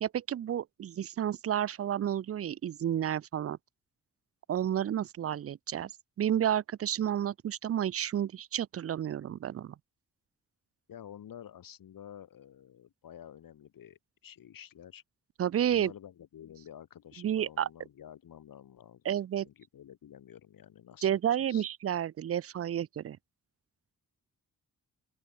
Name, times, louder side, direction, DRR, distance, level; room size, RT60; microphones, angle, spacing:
voice 1, 0.0-3.6 4.5-5.9 6.2-9.7 15.4-15.9 17.2-17.7 19.1-19.5 21.0-23.2, right 10 dB, 45° right, 0.5 m, -31 dB
voice 2, 10.9-15.0 15.7-19.1 19.3-21.2 21.5-21.7, left 10 dB, 85° left, 2.4 m, -50 dB
open air
wide cardioid pair, 135°, 33 cm